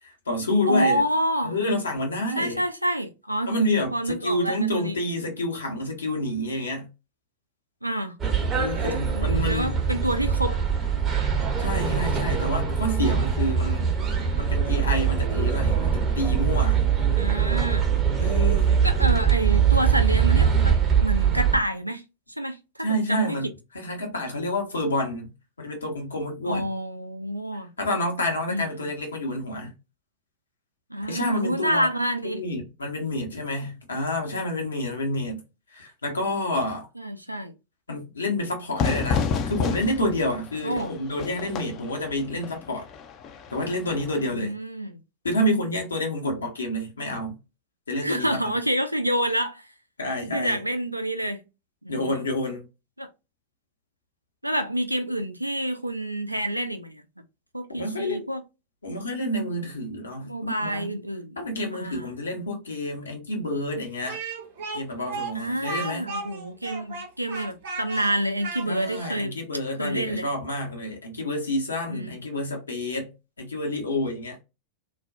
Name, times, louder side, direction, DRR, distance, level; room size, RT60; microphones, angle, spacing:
voice 1, 0.0-1.0 1.4-2.6 3.5-6.9 8.5-9.8 11.6-13.9 14.4-16.8 18.2-18.8 22.8-23.5 23.7-25.3 25.6-26.7 27.8-29.7 31.1-31.9 32.2-35.4 35.7-36.9 37.9-42.8 43.5-44.5 45.2-47.3 47.9-48.5 50.0-50.6 51.9-52.7 57.7-58.3 58.8-60.9 61.4-64.2 64.7-66.0 68.6-73.1 73.4-74.4, left 1 dB, 75° left, 0.8 m, -28 dB
voice 2, 0.7-1.6 2.4-3.5 3.9-5.0 7.8-8.2 9.2-10.6 17.2-17.9 18.8-22.0 22.4-22.6 22.9-23.5 26.5-27.7 28.5-28.9 30.9-32.4 37.0-37.5 40.6-40.9 44.3-45.0 46.3-46.5 48.0-49.7 50.3-51.4 51.8-52.2 53.0-53.1 54.4-57.0 57.5-58.4 60.2-61.4 61.7-62.1 65.3-69.4 69.8-70.3 71.9-72.1, right 1 dB, 90° right, 0.4 m, -28 dB
sound 1, 8.2-21.6, right 7 dB, 25° right, 0.7 m, -22 dB
Fire / Fireworks, 38.8-44.3, left 6 dB, 35° left, 0.4 m, -30 dB
Speech, 64.1-69.2, right 3 dB, 60° right, 0.7 m, -35 dB
2.4 x 2.1 x 2.4 m
figure-of-eight pair, 90°, 0 cm